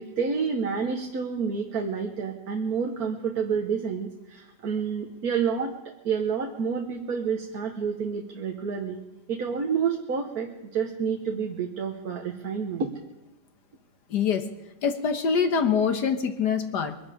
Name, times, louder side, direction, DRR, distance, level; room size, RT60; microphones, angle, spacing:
voice 1, 0.0-5.8 6.0-9.0 9.3-12.9, right 6 dB, 55° right, 2 dB, 1.7 m, -29 dB
voice 2, 14.1-14.5 14.8-17.0, left 6 dB, 70° left, 7 dB, 1.8 m, -24 dB
23.5 x 12.0 x 5.0 m, 0.95 s
omnidirectional pair, 1.9 m